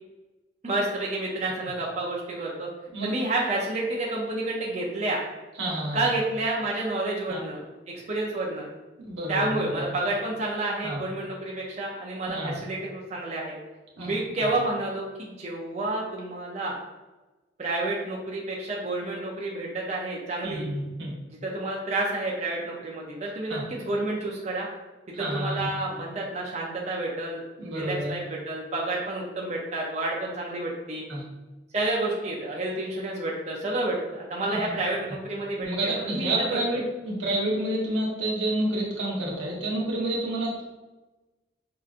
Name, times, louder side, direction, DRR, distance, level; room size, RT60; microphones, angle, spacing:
voice 1, 0.6-2.7 3.0-5.2 5.9-7.6 8.1-8.7 9.3-13.6 14.0-16.8 17.6-20.6 21.4-24.7 25.2-31.0 31.7-36.3 36.7-36.8, right 2 dB, 40° right, -3 dB, 0.5 m, -30 dB
voice 2, 5.6-6.1 7.3-7.4 9.0-9.7 10.8-11.0 12.3-12.5 14.0-14.5 20.4-21.1 23.5-23.6 25.1-25.6 27.6-28.2 31.1-31.2 34.5-34.7 35.6-40.6, right 1 dB, 90° right, -4 dB, 1.2 m, -29 dB
5.4 x 2.5 x 2.5 m, 1.1 s
head